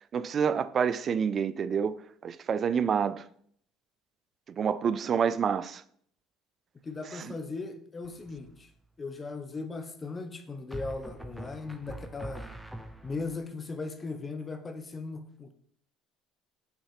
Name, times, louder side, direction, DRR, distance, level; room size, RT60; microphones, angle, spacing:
voice 1, 0.1-2.0 2.2-3.3 4.6-5.8 7.2-7.3, right 7 dB, 45° right, 0.4 m, -28 dB
voice 2, 6.8-8.7 9.0-12.5 13.0-15.5, left 3 dB, 30° left, 1.0 m, -38 dB
sound 1, 8.0-8.5 10.7-13.4, right 1 dB, 5° right, 0.8 m, -43 dB
5.9 x 4.2 x 5.7 m
supercardioid pair, 80°, 0 cm